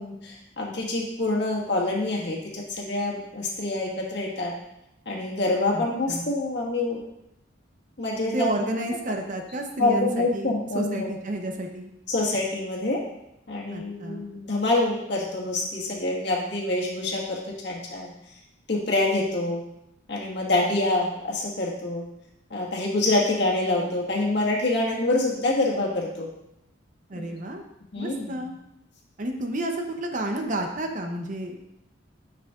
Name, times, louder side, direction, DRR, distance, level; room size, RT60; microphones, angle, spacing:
voice 1, 0.0-4.5 5.0-7.0 8.0-8.5 9.8-11.4 12.1-13.0 13.5-18.1 18.7-19.6 20.1-22.0 22.5-26.3 27.1-27.3 27.9-28.4, left 2 dB, 60° left, -3 dB, 1.6 m, -26 dB
voice 2, 5.7-6.3 8.2-10.5 10.7-11.9 13.7-14.2 27.1-27.6 28.0-28.5 29.2-31.6, right 1 dB, 40° right, 3 dB, 0.7 m, -31 dB
9.2 x 5.9 x 2.4 m, 0.84 s
head